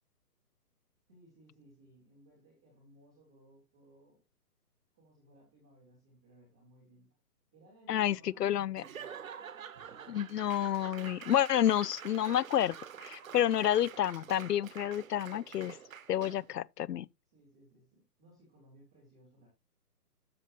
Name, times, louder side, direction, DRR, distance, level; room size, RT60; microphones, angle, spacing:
voice 1, 1.1-4.2 4.9-7.2 7.5-9.1 17.3-19.5, right 1 dB, 5° right, 0.7 m, -61 dB
voice 2, 7.9-8.8 10.1-12.8 13.0-15.8 16.1-17.1, left 11 dB, 80° left, 0.6 m, -29 dB
Laughter / Applause / Crowd, 8.8-16.5, right 8 dB, 55° right, 1.3 m, -47 dB
13.0 x 5.6 x 3.0 m
hypercardioid pair, 165°, 48 cm